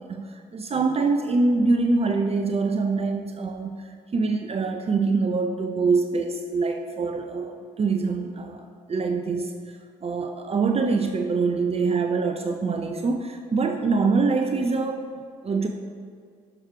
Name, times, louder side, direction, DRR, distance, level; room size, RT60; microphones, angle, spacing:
voice 1, 0.0-9.8 10.0-15.7, right 4 dB, 35° right, 5 dB, 0.6 m, -25 dB
6.5 x 6.0 x 4.5 m, 2.1 s
hypercardioid pair, 60°, 18 cm